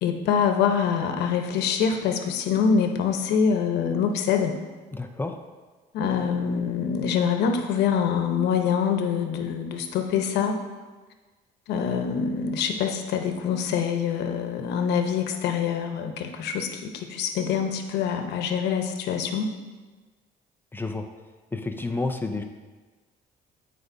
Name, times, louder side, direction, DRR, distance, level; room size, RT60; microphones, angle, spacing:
voice 1, 0.0-4.6 5.9-10.6 11.7-19.5, left 7 dB, 80° left, 5 dB, 0.9 m, -25 dB
voice 2, 4.9-5.4 20.7-21.0 21.5-22.4, left 3 dB, 10° left, 5 dB, 0.5 m, -30 dB
14.5 x 5.0 x 2.7 m, 1.3 s
cardioid pair, 110°, 17 cm